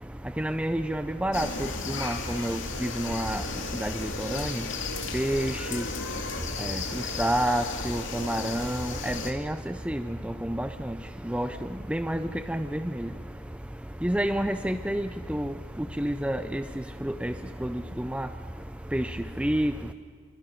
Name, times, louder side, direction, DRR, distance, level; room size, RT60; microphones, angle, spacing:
voice 1, 0.4-1.7 2.0-3.4 3.8-4.5 5.1-5.8 6.6-6.8 7.2-9.6 9.9-11.0 11.3-11.5 11.9-13.1 14.0-15.5 16.0-16.6 17.0-17.3 17.6-17.8 18.1-18.3 18.9-19.1 19.4-19.7, right 1 dB, 5° right, 9 dB, 0.5 m, -29 dB
sound 1, 1.3-9.3, left 4 dB, 65° left, 2.6 m, -34 dB
28.5 x 24.5 x 5.9 m, 2.2 s
head